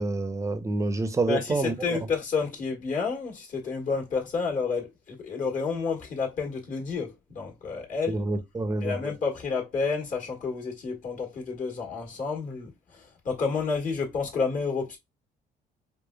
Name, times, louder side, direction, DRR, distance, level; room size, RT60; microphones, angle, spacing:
voice 1, 0.0-1.7 8.1-9.0, right 3 dB, 20° right, 0.6 m, -27 dB
voice 2, 1.3-8.2 8.8-15.0, left 5 dB, 50° left, 1.4 m, -30 dB
4.8 x 2.2 x 2.3 m
cardioid pair, 110°, 17 cm